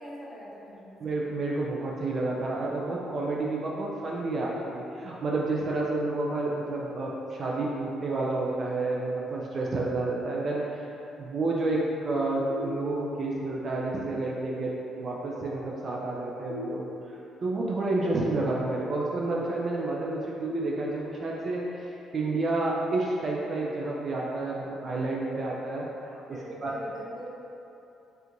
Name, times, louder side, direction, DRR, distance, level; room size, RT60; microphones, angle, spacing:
voice 1, 0.0-1.3 26.3-27.3, equal, 5° left, -7 dB, 0.8 m, -43 dB
voice 2, 1.0-16.9 17.4-26.2 26.6-26.7, right 2 dB, 45° right, -3 dB, 0.4 m, -30 dB
sound 1, 12.5-13.4 16.5-17.5 20.5-21.5, left 4 dB, 80° left, 0.4 m, -40 dB
3.3 x 2.6 x 2.9 m, 2.8 s
cardioid pair, 95°, 0 cm